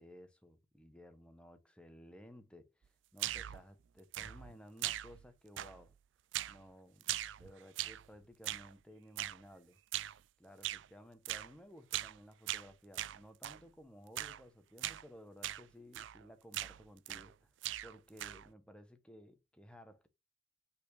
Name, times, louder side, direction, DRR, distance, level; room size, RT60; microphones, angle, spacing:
voice 1, 0.0-5.9 6.5-9.8 10.4-17.5 17.8-20.1, equal, 5° left, 1.0 m, -57 dB
sound 1, 3.2-3.6 4.1-4.5 4.8-5.3 5.6-6.0 6.3-6.6 7.0-8.1 8.4-8.7 9.2-9.4 9.9-10.2 10.6-10.9 11.3-11.5 11.9-12.2 12.5-13.6 14.2-14.4 14.8-15.0 15.4-15.7 15.9-16.2 16.5-17.3 17.6-18.5, right 14 dB, 65° right, 0.3 m, -40 dB
5.8 x 4.3 x 6.3 m
head